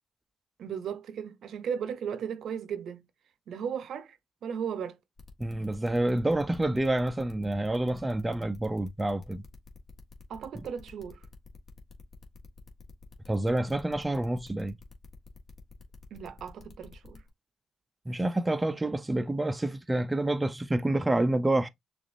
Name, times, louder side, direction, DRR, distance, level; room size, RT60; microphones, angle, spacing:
voice 1, 0.6-3.0 3.5-5.0 10.3-11.2 16.1-17.2, right 7 dB, 65° right, 0.6 m, -36 dB
sound 1, 5.2-17.3, left 5 dB, 50° left, 1.5 m, -51 dB
voice 2, 5.4-9.4 10.5-10.7 13.3-14.8 18.1-21.7, right 1 dB, 15° right, 0.5 m, -28 dB
6.5 x 2.5 x 2.6 m
cardioid pair, 90°, 0 cm